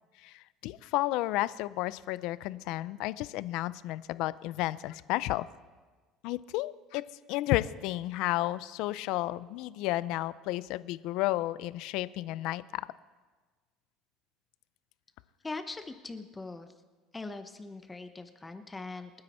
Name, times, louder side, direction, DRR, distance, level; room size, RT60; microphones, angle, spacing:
voice 1, 0.2-5.5 6.2-7.0 7.3-12.9, left 17 dB, 70° left, 17 dB, 0.5 m, -32 dB
voice 2, 15.4-16.7 17.1-19.1, left 3 dB, 15° left, 8 dB, 0.9 m, -41 dB
28.0 x 9.7 x 4.4 m, 1.4 s
cardioid pair, 135°, 0 cm